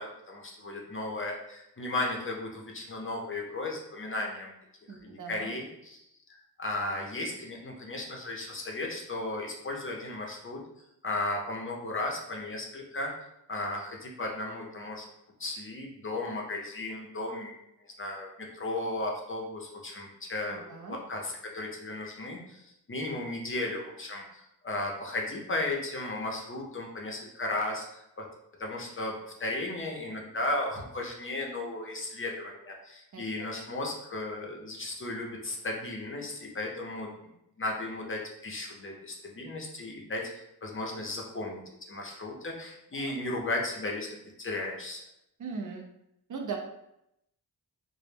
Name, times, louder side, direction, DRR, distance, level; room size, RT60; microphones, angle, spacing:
voice 1, 0.0-4.5 4.9-6.0 6.3-10.6 11.0-13.1 13.5-15.1 15.4-17.5 18.0-28.3 28.6-37.3 37.6-41.6 41.9-45.0, left 2 dB, 35° left, 0 dB, 0.5 m, -35 dB
voice 2, 4.9-5.5 20.5-21.0 33.1-33.2 42.9-43.1 45.4-45.9 46.3-46.6, right 5 dB, 50° right, 2 dB, 0.5 m, -39 dB
2.1 x 2.0 x 3.1 m, 0.81 s
cardioid pair, 65°, 39 cm